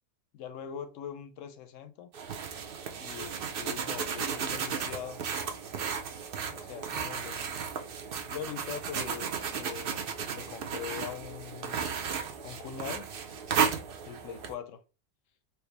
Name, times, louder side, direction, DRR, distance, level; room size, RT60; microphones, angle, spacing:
voice 1, 0.3-2.1 3.0-5.2 6.5-7.4 8.2-12.0 12.4-13.1 14.0-14.8, left 8 dB, 70° left, 0.9 m, -42 dB
sound 1, 2.1-14.5, right 6 dB, 60° right, 0.6 m, -34 dB
4.5 x 2.0 x 3.2 m
omnidirectional pair, 1.5 m